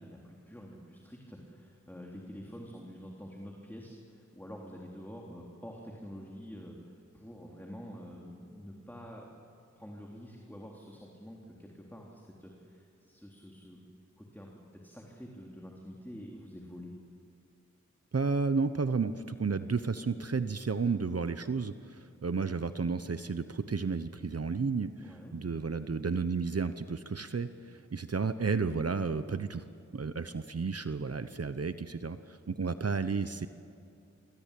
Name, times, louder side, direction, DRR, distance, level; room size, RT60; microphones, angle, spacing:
voice 1, 0.0-9.3 9.8-13.8 14.2-16.9 25.0-25.4, equal, 5° left, -1 dB, 3.7 m, -47 dB
voice 2, 18.1-29.6 29.9-33.5, right 4 dB, 55° right, 11 dB, 1.0 m, -32 dB
27.0 x 23.0 x 8.5 m, 2.6 s
wide cardioid pair, 50°, 29 cm